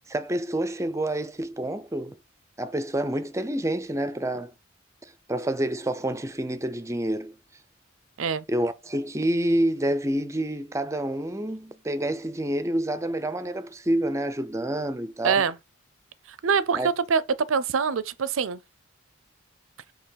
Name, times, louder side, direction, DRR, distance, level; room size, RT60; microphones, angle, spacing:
voice 1, 0.1-2.2 2.6-4.5 5.3-7.3 8.5-15.4 16.7-16.9, right 1 dB, 15° right, 0.5 m, -28 dB
voice 2, 15.2-15.6 16.4-17.2 17.5-18.6, right 6 dB, 75° right, 0.5 m, -24 dB
6.6 x 3.0 x 5.6 m
head